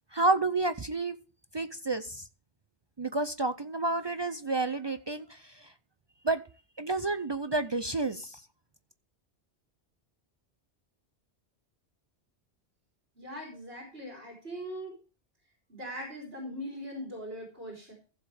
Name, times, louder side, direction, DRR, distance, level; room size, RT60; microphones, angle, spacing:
voice 1, 0.1-1.2 1.5-2.3 3.0-5.7 6.2-6.4 6.8-8.4, right 2 dB, 40° right, 11 dB, 0.3 m, -30 dB
voice 2, 13.2-15.0 15.7-17.9, equal, 65° right, -2 dB, 4.0 m, -40 dB
15.5 x 7.3 x 3.4 m, 0.35 s
omnidirectional pair, 1.1 m